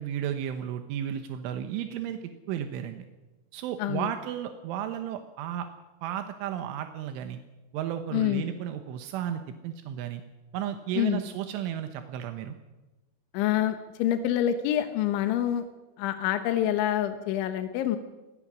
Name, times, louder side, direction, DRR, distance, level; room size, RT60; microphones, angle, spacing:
voice 1, 0.0-2.2 2.5-3.1 3.5-5.7 6.0-7.4 7.7-10.2 10.5-12.6, right 10 dB, 85° right, 7 dB, 3.6 m, -33 dB
voice 2, 3.8-4.1 8.1-8.4 11.0-11.2 13.3-15.7 16.0-18.0, left 11 dB, 80° left, 8 dB, 3.5 m, -26 dB
25.5 x 20.5 x 6.3 m, 1.1 s
omnidirectional pair, 5.4 m